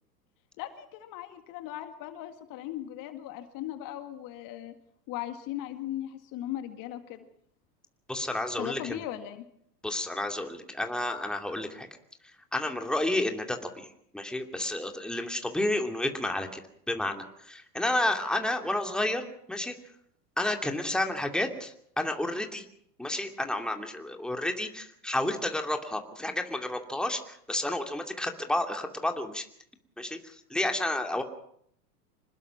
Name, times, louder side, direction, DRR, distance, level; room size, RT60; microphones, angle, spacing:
voice 1, 0.6-4.7 5.1-7.3 8.6-9.4, left 13 dB, 40° left, 8 dB, 2.1 m, -38 dB
voice 2, 8.1-9.0 9.8-11.9 12.5-16.6 16.9-19.7 20.4-22.6 23.0-29.5 30.0-31.2, left 1 dB, ahead, 4 dB, 2.5 m, -31 dB
26.5 x 20.0 x 6.0 m, 0.68 s
hypercardioid pair, 95°, 49 cm